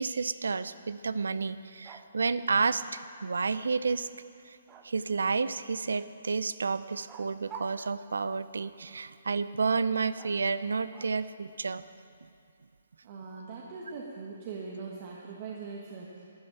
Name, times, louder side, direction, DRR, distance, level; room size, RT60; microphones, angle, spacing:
voice 1, 0.0-4.1 4.5-4.6 4.8-11.8, right 4 dB, 85° right, 15 dB, 0.5 m, -30 dB
sound 1, 1.8-2.8 4.7-5.3 7.1-8.6 10.2-11.3, right 6 dB, 20° right, 0.8 m, -50 dB
voice 2, 13.0-16.2, right 4 dB, 40° right, -3 dB, 1.6 m, -41 dB
13.0 x 7.8 x 8.9 m, 2.4 s
hypercardioid pair, 150°, 0 cm